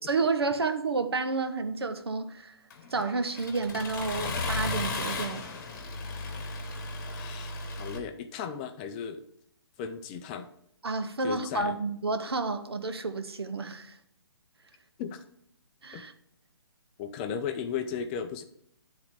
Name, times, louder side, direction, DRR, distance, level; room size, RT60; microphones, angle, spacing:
voice 1, 0.0-2.6 2.9-5.5 10.8-13.9 15.8-16.1, right 3 dB, 75° right, 0.8 m, -30 dB
Accelerating revving vroom, 2.7-8.0, left 3 dB, 45° left, 1.1 m, -35 dB
voice 2, 7.1-9.2 9.8-10.5 11.2-11.8 15.0-15.2 15.9-16.0 17.0-18.4, left 7 dB, 20° left, 0.4 m, -36 dB
9.7 x 3.6 x 4.8 m
figure-of-eight pair, 135°, 13 cm